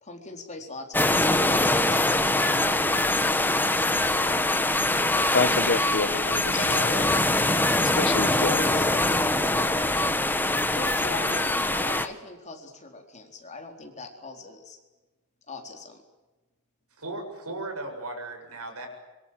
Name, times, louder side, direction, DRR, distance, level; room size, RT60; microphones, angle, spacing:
voice 1, 0.0-2.1 6.5-7.1 10.7-14.8 15.5-16.0, left 3 dB, 35° left, 3 dB, 4.3 m, -40 dB
sound 1, 0.9-12.1, left 2 dB, 10° left, 1.4 m, -23 dB
voice 2, 5.3-7.1 7.8-9.2, left 4 dB, 55° left, 14 dB, 1.1 m, -29 dB
voice 3, 17.0-18.9, right 2 dB, 80° right, 4 dB, 7.5 m, -36 dB
25.5 x 24.0 x 7.8 m, 1.2 s
head